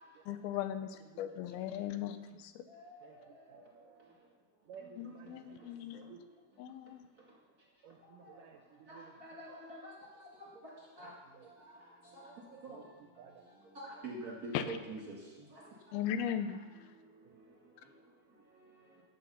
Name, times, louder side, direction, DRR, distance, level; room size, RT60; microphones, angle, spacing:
voice 1, 0.3-2.6 5.0-6.0 6.6-7.1 14.5-14.6 15.9-16.6, left 10 dB, 85° left, 10 dB, 2.6 m, -38 dB
voice 2, 1.0-2.0 3.0-3.6 4.7-6.3 7.8-9.4 11.0-11.5 12.7-13.4 14.9-15.0 17.4-17.5, right 7 dB, 75° right, 4 dB, 2.1 m, -57 dB
voice 3, 8.9-9.9 11.0-11.1 12.6-12.8 13.8-15.1, right 1 dB, 35° right, -4 dB, 1.8 m, -44 dB
14.5 x 7.3 x 5.6 m, 1.2 s
omnidirectional pair, 4.4 m